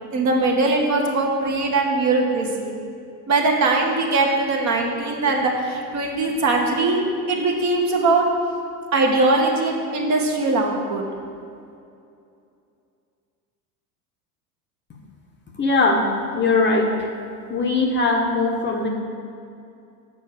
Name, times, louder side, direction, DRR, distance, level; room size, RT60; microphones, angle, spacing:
voice 1, 0.1-2.7 3.3-8.2 8.9-11.0, right 3 dB, 35° right, 1 dB, 1.3 m, -21 dB
voice 2, 15.6-17.1 17.5-18.9, left 3 dB, 25° left, 1 dB, 0.9 m, -20 dB
7.0 x 4.5 x 6.5 m, 2.5 s
hypercardioid pair, 85°, 48 cm